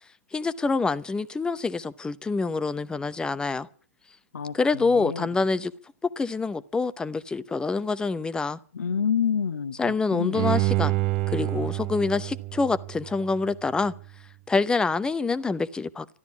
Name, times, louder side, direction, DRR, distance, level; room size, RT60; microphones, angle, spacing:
voice 1, 0.3-3.7 4.5-5.7 6.0-8.6 9.8-11.0 11.3-13.9 14.5-16.2, left 4 dB, 10° left, 0.8 m, -26 dB
voice 2, 4.8-5.3 8.7-9.8 10.1-10.5, left 7 dB, 80° left, 1.0 m, -27 dB
Bowed string instrument, 10.4-13.5 13.9-14.0, right 20 dB, 40° right, 0.7 m, -27 dB
13.5 x 12.0 x 8.2 m
hypercardioid pair, 115°, 8 cm